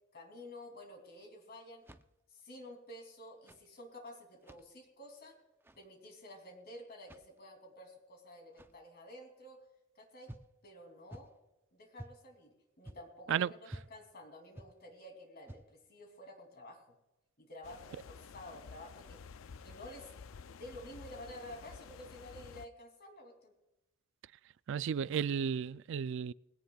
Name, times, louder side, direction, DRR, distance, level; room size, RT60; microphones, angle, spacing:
voice 1, 0.1-1.8 2.3-5.3 5.8-9.6 10.0-10.3 10.6-11.3 11.7-12.5 12.8-17.0 17.4-19.2 19.6-20.1 20.5-23.5, left 1 dB, 50° left, 2.9 m, -51 dB
sound 1, 1.7-2.4 3.3-3.7 4.3-4.7 5.5-5.9 7.0-7.4 8.5-8.9 10.3-10.5 11.1-11.4 12.0-12.2 12.8-13.2 13.7-13.9 14.5-14.8 15.4-15.8, right 1 dB, 10° right, 0.6 m, -51 dB
sound 2, 17.6-22.7, left 5 dB, 80° left, 0.5 m, -52 dB
voice 2, 24.7-26.3, right 7 dB, 65° right, 0.3 m, -33 dB
21.0 x 17.0 x 2.4 m
head